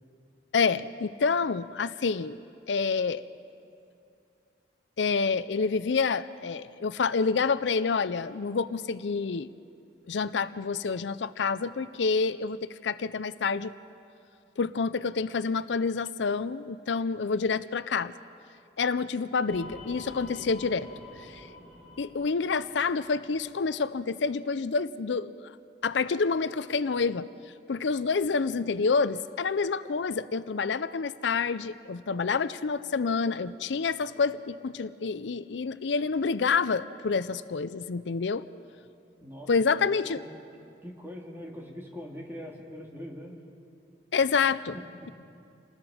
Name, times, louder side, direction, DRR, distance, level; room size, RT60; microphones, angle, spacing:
voice 1, 0.5-2.4 2.7-3.2 5.0-9.5 10.1-13.7 14.6-18.1 18.8-20.9 21.2-21.5 22.0-25.3 25.8-27.3 27.7-38.4 39.5-40.2 44.1-44.8, left 5 dB, 85° left, 15 dB, 0.5 m, -28 dB
sound 1, 19.5-23.9, left 1 dB, 5° left, 7.2 m, -47 dB
voice 2, 40.8-43.4 44.7-45.1, equal, 15° right, -1 dB, 2.5 m, -42 dB
28.5 x 19.5 x 5.0 m, 2.5 s
head